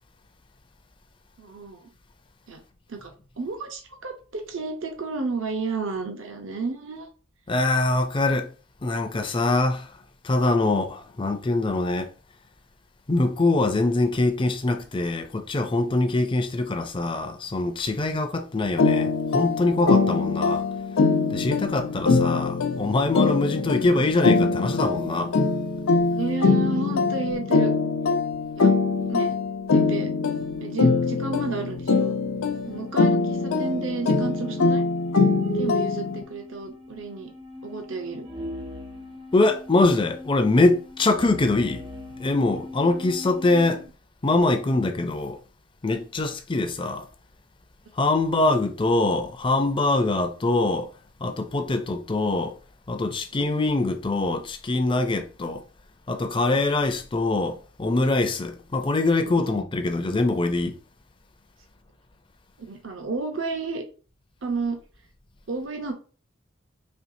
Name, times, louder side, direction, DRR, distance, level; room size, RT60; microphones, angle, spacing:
voice 1, 1.4-1.9 2.5-2.6 2.9-3.1 3.4-7.1 26.1-27.7 28.6-28.7 29.1-29.4 29.7-30.1 30.6-32.2 32.7-34.8 35.5-37.3 37.6-38.3 51.5-51.6 53.3-53.5 59.2-59.3 62.6-63.8 64.4-64.8 65.5-65.9, right 3 dB, 65° right, 0.8 m, -32 dB
voice 2, 7.5-8.5 8.8-9.8 10.2-12.1 13.1-20.6 21.3-25.3 39.3-41.8 42.2-43.8 44.2-45.4 45.8-47.1 48.0-50.9 51.2-52.5 52.9-55.6 56.1-60.8, left 2 dB, 25° left, 0.5 m, -23 dB
sound 1, 18.8-36.2, left 4 dB, 90° left, 0.6 m, -23 dB
sound 2, 32.7-43.9, equal, 25° right, 0.6 m, -39 dB
4.4 x 3.1 x 2.6 m
head